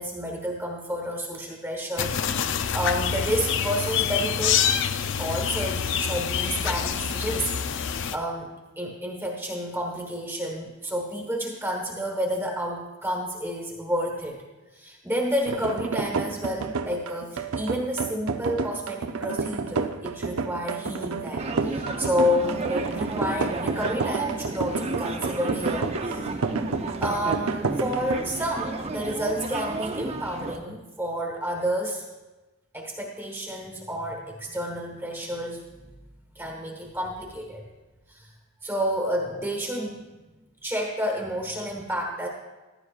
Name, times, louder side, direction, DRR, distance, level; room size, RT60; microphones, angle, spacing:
voice 1, 0.0-4.9 5.2-14.4 14.7-26.4 27.0-32.0 32.7-35.6 36.3-37.7 38.1-38.3 38.6-40.2 40.6-42.3, equal, 10° right, 0 dB, 1.2 m, -30 dB
sound 1, 2.0-8.2, left 8 dB, 60° left, 0.4 m, -26 dB
sound 2, 15.5-28.2, right 4 dB, 85° right, 0.6 m, -30 dB
sound 3, 21.4-30.6, right 3 dB, 30° right, 0.6 m, -32 dB
15.0 x 11.0 x 2.4 m, 1.2 s
head